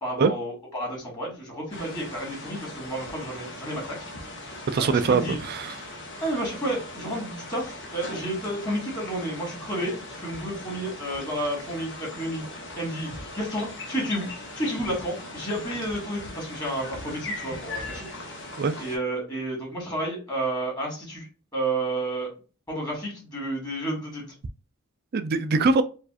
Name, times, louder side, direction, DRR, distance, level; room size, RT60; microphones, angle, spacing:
voice 1, 0.0-4.0 4.8-5.4 6.2-12.4 12.8-13.1 13.4-14.3 14.6-18.1 18.8-22.3 22.7-24.3, right 1 dB, 20° left, 2.0 m, -31 dB
sound 1, 1.7-19.0, left 2 dB, 60° left, 1.1 m, -39 dB
voice 2, 4.7-5.8 18.6-18.7 25.1-25.8, right 4 dB, 45° right, 0.4 m, -22 dB
4.6 x 2.5 x 2.4 m
head